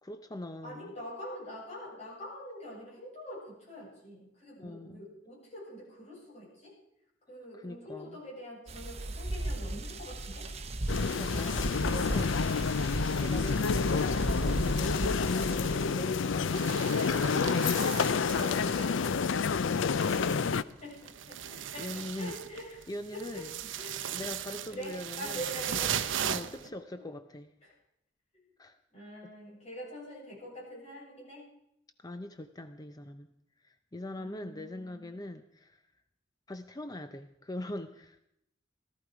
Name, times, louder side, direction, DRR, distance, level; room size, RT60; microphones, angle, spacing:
voice 1, 0.0-0.9 4.6-5.0 7.5-8.2 11.0-12.9 13.2-19.5 21.4-22.4 22.9-23.6 24.0-25.5 26.3-27.5 28.6-28.8 29.2-29.3 32.0-33.3 33.6-35.8 36.5-38.2, left 1 dB, 20° left, 9 dB, 0.6 m, -42 dB
voice 2, 0.6-6.7 7.3-10.5 20.8-22.8 23.1-24.2 24.7-27.0 28.9-31.5 34.2-35.2, equal, 35° left, -5 dB, 7.5 m, -45 dB
sound 1, 8.7-15.9, right 1 dB, 35° right, 1.0 m, -35 dB
sound 2, 10.9-20.6, left 5 dB, 75° left, 0.5 m, -29 dB
sound 3, 16.5-19.3 19.5-26.7, right 9 dB, 70° right, 0.7 m, -38 dB
17.5 x 13.5 x 4.9 m, 0.79 s
head